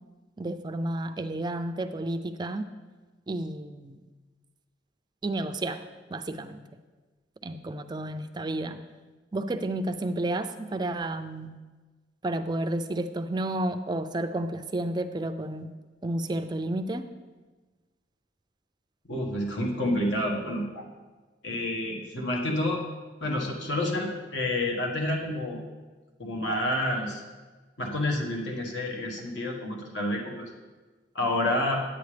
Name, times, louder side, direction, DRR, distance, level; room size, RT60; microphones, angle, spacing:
voice 1, 0.4-2.7 3.3-4.0 5.2-5.8 6.1-6.6 7.4-8.8 9.3-11.5 12.2-15.7 16.0-17.0, right 1 dB, 25° right, 8 dB, 0.4 m, -31 dB
voice 2, 19.1-20.8 21.4-22.8 23.2-25.6 26.2-27.2 27.8-30.5 31.1-31.8, left 1 dB, 65° left, 0 dB, 1.5 m, -29 dB
9.3 x 8.7 x 3.4 m, 1.3 s
head